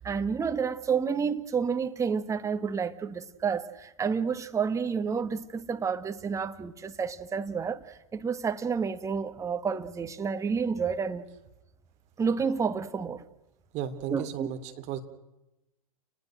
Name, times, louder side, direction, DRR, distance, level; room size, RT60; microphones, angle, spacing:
voice 1, 0.0-11.3 12.2-13.2 14.1-14.5, right 6 dB, 15° right, 1.7 m, -30 dB
voice 2, 13.7-15.0, right 9 dB, 40° right, 3.3 m, -35 dB
29.5 x 20.0 x 6.5 m
figure-of-eight pair, 100°, 19 cm